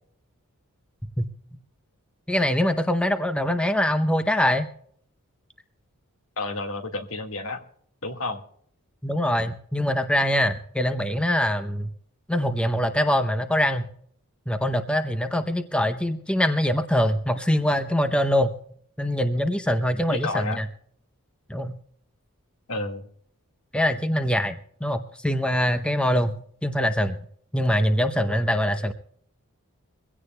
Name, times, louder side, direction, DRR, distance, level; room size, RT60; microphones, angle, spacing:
voice 1, 2.3-4.7 9.0-11.9 12.3-13.9 14.5-18.5 19.0-20.7 21.5-21.7 23.7-27.2 27.5-28.9, equal, 5° left, 8 dB, 0.7 m, -23 dB
voice 2, 6.4-7.6 8.0-8.4 19.9-20.6 22.7-23.1, left 3 dB, 70° left, 5 dB, 1.7 m, -31 dB
23.5 x 16.5 x 2.2 m, 0.63 s
head